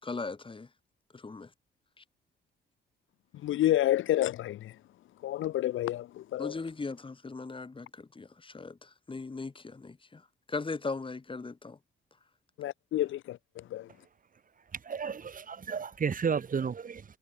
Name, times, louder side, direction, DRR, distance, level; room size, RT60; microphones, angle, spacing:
voice 1, 0.0-0.7 1.1-1.5 2.0-2.1 6.4-10.2 10.5-11.8, left 3 dB, 25° left, 5.7 m, -38 dB
voice 2, 3.4-4.8 5.2-6.6 12.6-13.9, left 13 dB, 80° left, 1.8 m, -29 dB
voice 3, 14.8-17.0, right 6 dB, 45° right, 5.6 m, -32 dB
cardioid pair, 90°, 20 cm